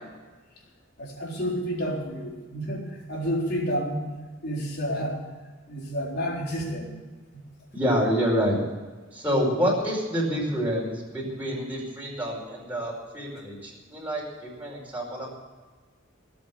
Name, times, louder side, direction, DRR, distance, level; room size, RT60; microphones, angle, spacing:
voice 1, 1.0-4.0 4.4-5.2 5.7-6.9, equal, 55° left, -2 dB, 4.2 m, -30 dB
voice 2, 7.7-8.6 9.1-15.3, equal, 10° right, -4 dB, 4.8 m, -27 dB
19.0 x 8.4 x 8.1 m, 1.3 s
head